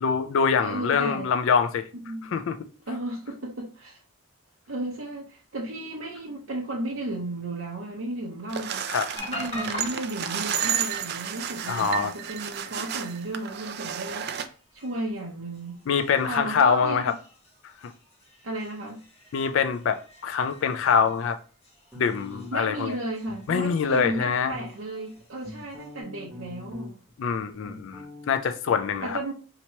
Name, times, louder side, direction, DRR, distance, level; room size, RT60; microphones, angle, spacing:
voice 1, 0.0-1.9 2.3-2.6 8.9-9.1 11.7-12.1 15.9-17.1 17.8-17.9 19.3-21.4 22.0-22.9 23.5-24.5 27.2-29.2, left 6 dB, 65° left, 0.3 m, -24 dB
voice 2, 0.6-1.3 2.0-2.2 2.9-4.0 4.7-8.9 9.3-15.8 16.3-17.1 18.4-19.0 22.5-27.0 29.0-29.3, right 1 dB, 70° right, 0.7 m, -34 dB
sound 1, 8.5-14.5, right 9 dB, 50° right, 0.3 m, -32 dB
sound 2, 9.2-26.0, equal, 30° left, 1.1 m, -46 dB
sound 3, 21.9-22.8 23.2-24.7 25.2-27.1 27.4-28.4, left 2 dB, 5° right, 1.0 m, -42 dB
2.9 x 2.8 x 4.4 m
head